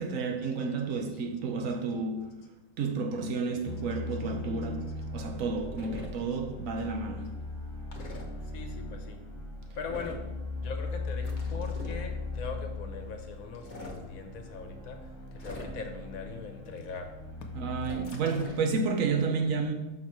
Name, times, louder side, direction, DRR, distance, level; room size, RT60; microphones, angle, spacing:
voice 1, 0.0-2.3 2.8-7.3 17.5-19.7, right 4 dB, 65° right, 1.1 m, -31 dB
sound 1, 3.7-17.9, left 2 dB, 10° left, 1.2 m, -39 dB
sound 2, 5.7-6.1 7.9-8.2 9.9-10.3 11.2-12.0 13.5-14.0 15.4-16.0 17.8-18.6, left 2 dB, 40° left, 0.9 m, -43 dB
voice 2, 8.5-9.2 9.7-10.3 10.6-17.1, left 4 dB, 70° left, 1.3 m, -41 dB
6.2 x 4.4 x 4.7 m
omnidirectional pair, 1.5 m